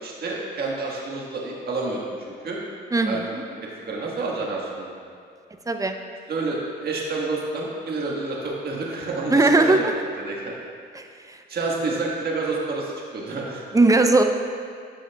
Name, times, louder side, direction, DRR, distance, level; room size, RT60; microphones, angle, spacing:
voice 1, 0.0-2.6 3.0-3.4 3.8-5.0 6.3-9.9 10.2-10.5 11.5-13.6, right 3 dB, 50° right, -3 dB, 1.5 m, -29 dB
voice 2, 2.9-3.2 5.7-6.0 9.3-9.8 11.3-11.4 13.7-14.2, right 2 dB, 15° right, 5 dB, 0.5 m, -18 dB
11.5 x 6.3 x 2.3 m, 2.3 s
cardioid pair, 90°, 20 cm